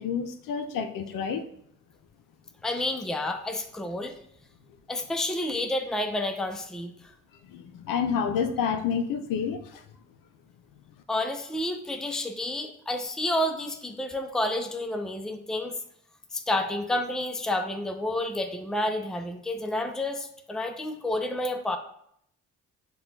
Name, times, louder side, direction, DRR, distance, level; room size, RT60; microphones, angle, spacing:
voice 1, 0.0-1.4 7.5-9.6, left 6 dB, 65° left, 6 dB, 0.6 m, -29 dB
voice 2, 2.6-4.1 4.9-6.9 11.1-15.8 16.3-21.8, left 1 dB, ahead, 6 dB, 0.5 m, -30 dB
6.7 x 2.3 x 2.6 m, 0.71 s
hypercardioid pair, 50°, 35 cm